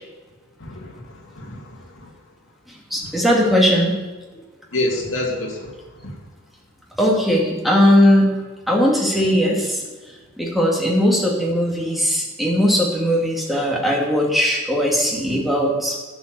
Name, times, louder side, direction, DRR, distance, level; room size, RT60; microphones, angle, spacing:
voice 1, 0.6-2.1 4.7-6.2, left 1 dB, 60° left, 0 dB, 2.5 m, -28 dB
voice 2, 2.7-4.0 6.9-9.9 10.4-16.0, equal, ahead, -3 dB, 2.4 m, -19 dB
11.5 x 8.0 x 6.8 m, 1.3 s
head